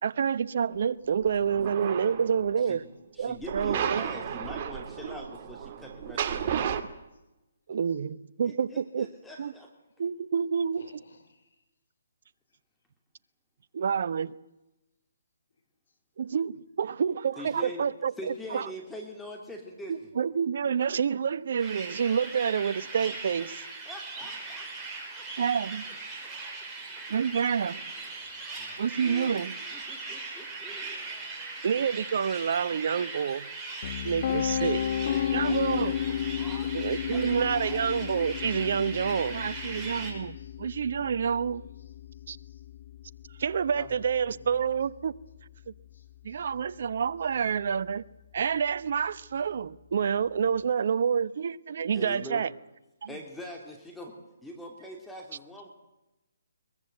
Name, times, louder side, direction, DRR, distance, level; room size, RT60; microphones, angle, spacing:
voice 1, 0.0-2.8 3.2-4.0 7.7-9.1 9.4-9.5 10.0-11.0 13.7-14.3 16.2-18.7 19.9-23.6 25.4-25.9 27.1-27.8 28.8-29.6 31.6-33.5 34.0-34.8 35.3-36.0 36.7-41.6 42.3-42.4 43.4-45.1 46.2-48.0 48.3-52.5 53.0-53.1, right 7 dB, 60° right, 1.0 m, -28 dB
sound 1, 1.1-2.6 3.4-6.8, right 8 dB, 40° right, 2.1 m, -33 dB
voice 2, 3.1-6.7 8.4-9.7 17.4-17.8 18.2-20.1 23.8-25.2 26.2-26.3 28.6-28.7 29.0-29.3 29.7-31.0 34.2-34.4 35.0-36.0 36.4-36.7 37.1-37.2 37.5-37.9 43.7-44.0 44.3-44.4 51.9-52.4 53.1-54.1 54.4-55.7, equal, 5° left, 2.9 m, -43 dB
voice 3, 10.8-11.5 26.8-27.2 40.4-40.6 42.5-42.6 45.9-46.0 46.3-46.4, left 4 dB, 70° left, 4.5 m, -59 dB
sound 2, 21.6-40.1, right 3 dB, 10° right, 6.1 m, -40 dB
Piano, 33.8-45.7, left 9 dB, 50° left, 0.9 m, -33 dB
22.5 x 21.5 x 8.0 m
hypercardioid pair, 145°, 0 cm